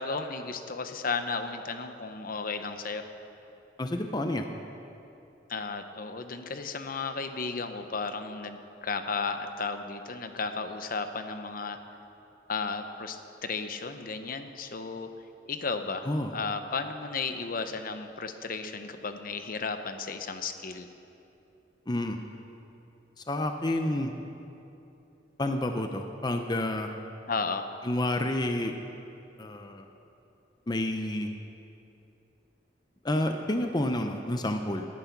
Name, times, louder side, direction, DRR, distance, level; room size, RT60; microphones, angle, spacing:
voice 1, 0.0-3.1 5.5-11.8 12.5-15.1 15.5-20.9 27.3-27.7, left 4 dB, 50° left, 8 dB, 0.9 m, -34 dB
voice 2, 3.8-4.4 16.1-16.3 21.9-22.2 23.2-24.1 25.4-26.9 27.8-28.7 29.4-29.8 30.7-31.3 33.0-34.9, left 1 dB, 25° left, 5 dB, 0.7 m, -29 dB
18.5 x 12.0 x 6.0 m, 2.9 s
head